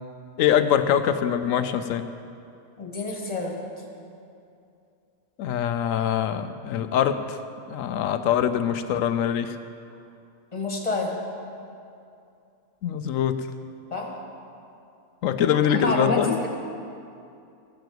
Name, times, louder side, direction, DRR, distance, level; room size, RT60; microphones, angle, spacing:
voice 1, 0.4-2.0 5.4-7.4 7.7-9.6 12.8-13.5 15.2-16.4, left 9 dB, 80° left, 10 dB, 1.0 m, -23 dB
voice 2, 2.8-3.6 10.5-11.2 13.9-14.1 15.6-16.5, left 2 dB, 30° left, -1 dB, 2.0 m, -28 dB
14.5 x 6.9 x 7.8 m, 2.6 s
omnidirectional pair, 1.4 m